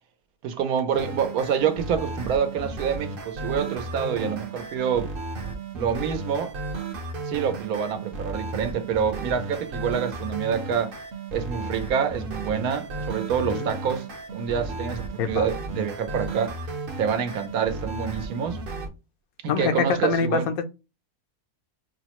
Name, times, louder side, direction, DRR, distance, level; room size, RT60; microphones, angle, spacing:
voice 1, 0.4-5.1 5.7-6.5 7.3-10.9 11.3-14.1 14.3-16.6 17.0-18.6 19.4-20.5, right 7 dB, 90° right, 1.2 m, -27 dB
sound 1, 0.9-18.9, right 3 dB, 55° right, 0.7 m, -34 dB
voice 2, 13.4-13.7 15.2-15.5 19.5-20.6, left 6 dB, 85° left, 1.1 m, -25 dB
5.4 x 2.0 x 2.9 m
omnidirectional pair, 1.5 m